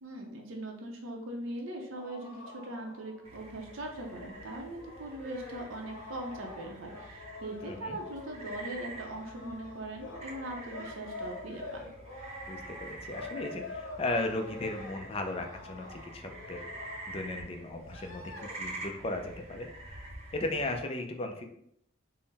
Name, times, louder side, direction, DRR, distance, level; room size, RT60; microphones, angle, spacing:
voice 1, 0.0-11.9, right 1 dB, 85° right, 1 dB, 0.6 m, -40 dB
sound 1, 1.9-17.2 17.8-18.6, left 3 dB, 75° left, 0.9 m, -46 dB
sound 2, 3.2-20.9, right 2 dB, 35° right, 0.7 m, -47 dB
voice 2, 7.6-8.0 12.5-16.6 17.1-19.7 20.3-21.4, left 2 dB, 30° left, 4 dB, 0.4 m, -36 dB
3.8 x 2.1 x 4.0 m, 0.73 s
head